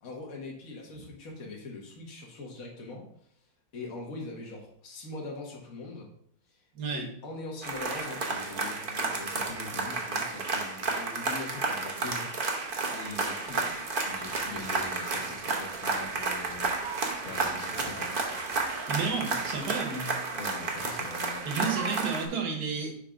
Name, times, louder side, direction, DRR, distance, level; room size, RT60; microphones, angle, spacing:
voice 1, 0.0-3.1 3.7-6.1 6.5-6.6 6.9-12.3 12.9-18.1 19.0-19.1 20.3-21.7, left 3 dB, 45° left, -2 dB, 1.8 m, -42 dB
voice 2, 6.7-7.1 18.9-20.1 21.4-23.0, right 5 dB, 60° right, 2 dB, 1.7 m, -31 dB
sound 1, 7.6-22.3, right 3 dB, 40° right, 0.7 m, -32 dB
7.3 x 3.4 x 5.1 m, 0.64 s
omnidirectional pair, 2.1 m